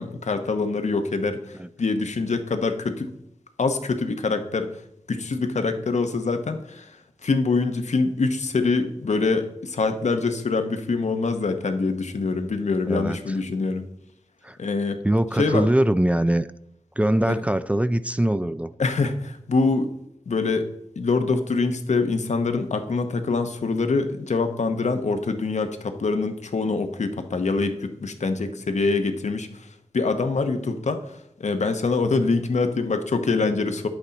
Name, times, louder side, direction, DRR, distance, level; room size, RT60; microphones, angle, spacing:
voice 1, 0.0-3.1 3.6-4.7 5.1-6.9 7.2-13.9 14.6-15.0 15.4-15.7 17.3-17.4 18.8-19.9 20.3-20.7 21.0-29.7 29.9-33.9, left 3 dB, 80° left, 7 dB, 0.9 m, -24 dB
voice 2, 12.9-13.2 14.4-14.6 15.0-16.5 17.0-18.7, right 1 dB, 10° right, 13 dB, 0.3 m, -22 dB
10.0 x 8.1 x 4.0 m, 0.79 s
wide cardioid pair, 80°, 12 cm